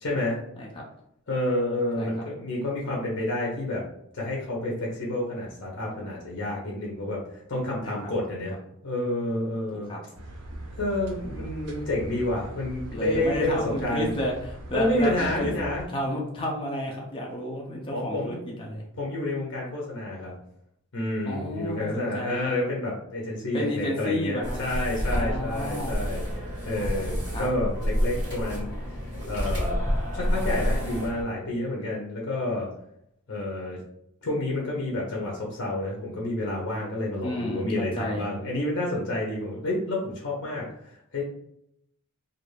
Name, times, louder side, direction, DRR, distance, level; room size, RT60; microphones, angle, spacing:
voice 1, 0.0-0.4 1.3-3.8 4.1-8.6 8.8-9.9 10.8-14.1 14.7-15.9 17.9-18.4 18.9-20.3 20.9-26.2 26.6-29.0 29.3-29.7 30.1-32.7 33.3-33.8 34.2-41.2, left 1 dB, 55° left, -3 dB, 0.7 m, -29 dB
sound 1, 10.1-15.9, right 1 dB, 75° right, 0.5 m, -40 dB
voice 2, 12.9-15.5 15.9-18.8 21.3-22.5 23.5-24.6 25.1-26.0 27.3-27.5 37.2-38.3, left 1 dB, 25° left, -1 dB, 0.4 m, -31 dB
sound 2, 24.4-31.2, equal, 20° right, 1.4 m, -29 dB
2.5 x 2.3 x 3.1 m, 0.75 s
head